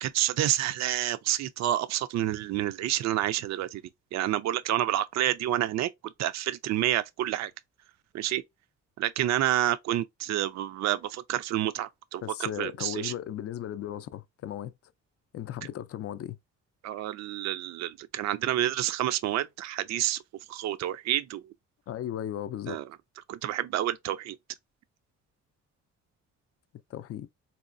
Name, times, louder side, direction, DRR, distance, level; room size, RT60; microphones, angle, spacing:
voice 1, 0.0-3.8 4.1-7.5 8.1-8.4 9.0-13.1 16.8-20.2 20.5-21.4 22.7-22.8 23.3-24.4, right 13 dB, 60° right, 0.4 m, -29 dB
voice 2, 12.2-14.7 15.3-16.4 21.9-22.8 26.9-27.3, left 11 dB, 50° left, 0.4 m, -36 dB
4.1 x 2.2 x 2.5 m
cardioid pair, 90°, 30 cm